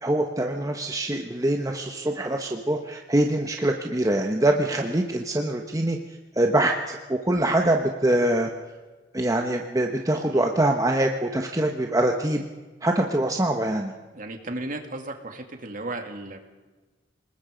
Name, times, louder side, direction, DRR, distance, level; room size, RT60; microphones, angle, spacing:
voice 1, 0.0-6.0 6.4-8.5 9.1-12.4 12.8-13.9, right 1 dB, 20° right, 3 dB, 1.1 m, -24 dB
voice 2, 14.1-16.4, right 2 dB, 45° right, 5 dB, 2.3 m, -35 dB
27.5 x 20.0 x 5.2 m, 1.3 s
head